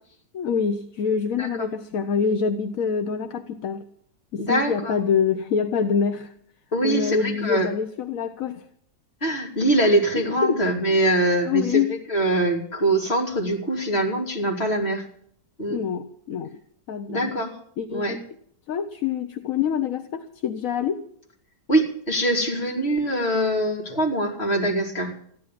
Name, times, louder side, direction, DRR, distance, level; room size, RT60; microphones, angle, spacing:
voice 1, 0.3-3.8 4.3-6.3 6.8-8.6 10.2-10.6 11.4-11.9 15.7-16.5 16.9-17.4 17.8-18.3 18.7-21.0, left 6 dB, 60° left, 9 dB, 1.1 m, -25 dB
voice 2, 4.4-5.0 6.7-7.7 9.2-11.8 12.1-15.0 15.6-15.8 17.1-17.6 17.9-18.2 21.7-25.1, right 1 dB, 35° left, 1 dB, 3.3 m, -23 dB
15.0 x 11.5 x 7.5 m, 0.66 s
omnidirectional pair, 1.9 m